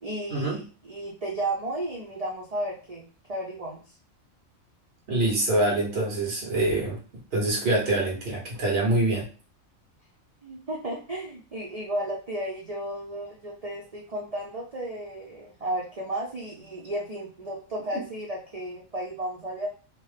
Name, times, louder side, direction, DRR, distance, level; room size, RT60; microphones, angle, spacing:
voice 1, 0.0-3.0 3.3-3.8 10.4-19.7, right 1 dB, 70° right, -3 dB, 0.3 m, -33 dB
voice 2, 5.1-7.0 7.3-9.3, right 2 dB, 50° right, -3 dB, 1.2 m, -25 dB
2.9 x 2.0 x 3.2 m, 0.37 s
omnidirectional pair, 1.4 m